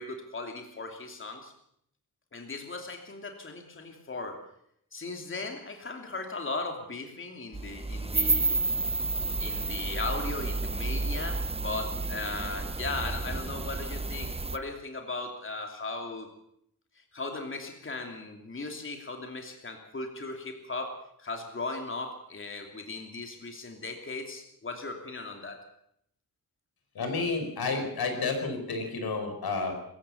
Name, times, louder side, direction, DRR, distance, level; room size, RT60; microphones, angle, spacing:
voice 1, 0.0-1.5 2.3-4.4 4.9-8.6 9.4-16.3 16.9-25.6, left 3 dB, 35° left, 4 dB, 2.9 m, -37 dB
sound 1, 7.5-14.6, right 3 dB, 15° right, 0.8 m, -31 dB
voice 2, 27.0-29.7, left 4 dB, 85° left, 5 dB, 5.2 m, -30 dB
25.0 x 15.0 x 7.1 m, 0.72 s
wide cardioid pair, 115°, 36 cm